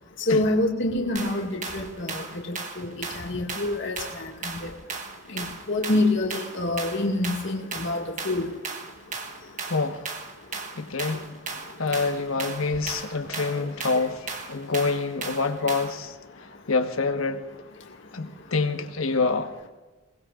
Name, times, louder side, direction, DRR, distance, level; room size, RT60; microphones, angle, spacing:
voice 1, 0.2-4.8 5.3-8.9 9.4-9.6 10.5-10.6 11.1-11.3 11.6-12.0 12.5-12.6 13.2-13.7 14.6-14.7 17.9-18.3, left 2 dB, 60° left, 2.0 m, -28 dB
sound 1, 1.2-16.1, right 4 dB, 35° right, 1.5 m, -36 dB
voice 2, 9.7-10.0 10.7-11.4 11.8-14.2 14.5-16.1 16.7-17.4 18.1-19.7, left 4 dB, 85° left, 1.4 m, -26 dB
22.5 x 19.5 x 2.5 m
head